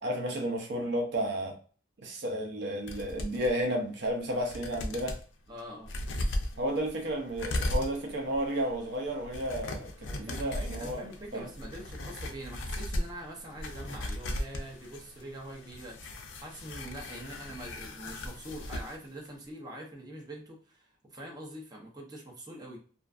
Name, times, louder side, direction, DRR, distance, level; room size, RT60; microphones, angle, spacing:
voice 1, 0.0-1.6 2.0-5.2 6.6-11.5, equal, 60° right, 0.5 m, -32 dB
sound 1, 2.9-3.5 4.0-4.1 4.4-5.2 5.8-19.0 19.3-19.4, left 1 dB, 75° left, 0.5 m, -37 dB
voice 2, 5.5-5.9 10.0-22.8, right 1 dB, 20° right, 0.6 m, -44 dB
2.5 x 2.3 x 2.4 m
head